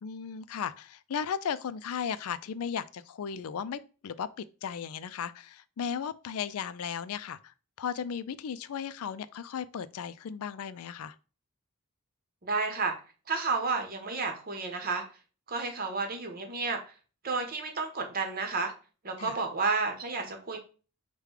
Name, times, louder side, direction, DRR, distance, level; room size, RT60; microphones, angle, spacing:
voice 1, 0.0-11.2 19.2-19.4, left 7 dB, 75° left, 0.4 m, -36 dB
voice 2, 12.4-12.9 13.3-15.0 15.5-16.8 17.2-18.7 19.0-20.6, right 4 dB, 40° right, 1.0 m, -31 dB
4.9 x 2.2 x 4.8 m
head